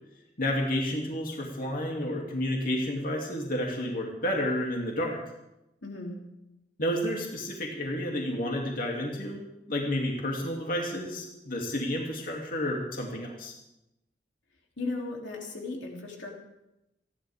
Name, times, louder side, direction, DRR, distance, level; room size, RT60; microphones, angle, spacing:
voice 1, 0.4-5.2 6.8-9.4 9.7-13.5, left 1 dB, 50° left, -1 dB, 2.8 m, -30 dB
voice 2, 5.8-6.2 14.8-16.3, left 3 dB, 90° left, 0 dB, 3.2 m, -36 dB
29.5 x 11.5 x 3.7 m, 0.89 s
head